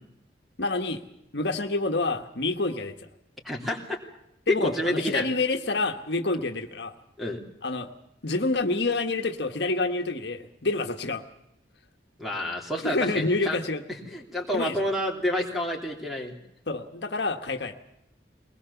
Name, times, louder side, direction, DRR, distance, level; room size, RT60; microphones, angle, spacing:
voice 1, 0.6-1.0 1.3-3.0 4.5-6.9 7.6-7.9 8.2-11.2 12.8-13.8 14.5-14.9 16.7-17.8, left 3 dB, 70° left, 5 dB, 1.4 m, -28 dB
voice 2, 3.4-4.0 4.5-5.3 7.2-7.4 12.2-13.6 14.1-16.3, left 1 dB, ahead, 1 dB, 3.1 m, -29 dB
22.0 x 20.0 x 7.0 m, 0.83 s
head